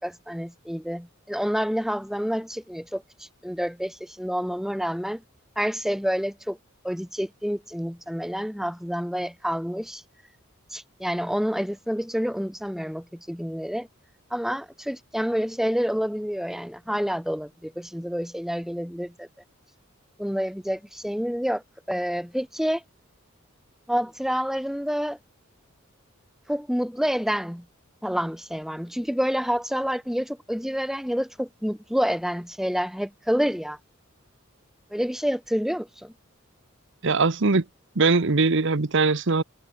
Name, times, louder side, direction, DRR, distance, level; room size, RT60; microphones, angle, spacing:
voice 1, 0.0-5.2 5.6-6.6 6.8-10.0 10.7-13.9 14.3-19.3 20.2-22.8 23.9-25.2 26.5-27.6 28.0-33.8 34.9-36.1, equal, ahead, 4.1 m, -28 dB
voice 2, 37.0-37.6 38.0-39.4, right 3 dB, 60° right, 1.0 m, -21 dB
head